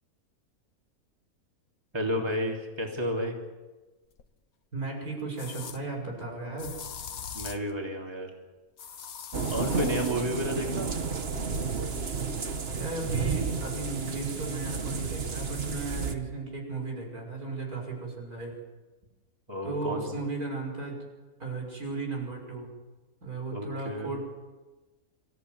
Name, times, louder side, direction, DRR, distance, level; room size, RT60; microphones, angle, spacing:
voice 1, 1.9-3.4 7.3-8.3 9.5-10.9 19.5-20.1 23.5-24.1, equal, 15° right, 0 dB, 3.2 m, -31 dB
sound 1, 4.2-4.3 5.4-5.8 6.6-7.7 8.8-10.2, left 7 dB, 80° left, 1.6 m, -41 dB
voice 2, 4.7-6.7 12.7-18.5 19.6-21.0 21.4-22.7 23.2-24.2, right 3 dB, 85° right, 0 dB, 6.5 m, -35 dB
sound 2, 9.3-16.1, right 5 dB, 45° right, 1.6 m, -31 dB
25.5 x 15.0 x 9.5 m, 1.2 s
omnidirectional pair, 1.5 m